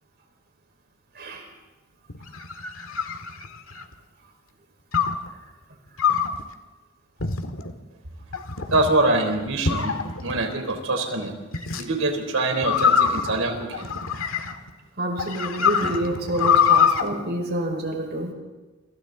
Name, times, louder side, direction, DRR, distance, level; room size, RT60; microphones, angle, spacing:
voice 1, 1.2-1.5 15.0-18.3, right 1 dB, 55° right, 2 dB, 5.2 m, -28 dB
sound 1, 2.1-3.9 4.9-5.3 6.0-6.4 7.2-7.7 8.3-8.9 9.6-10.4 11.5-11.8 12.6-14.7 15.2-17.0, left 7 dB, 90° left, 1.9 m, -23 dB
voice 2, 8.7-11.3 11.8-13.9, right 2 dB, 85° right, 4 dB, 4.1 m, -24 dB
29.5 x 26.0 x 4.0 m, 1.2 s
head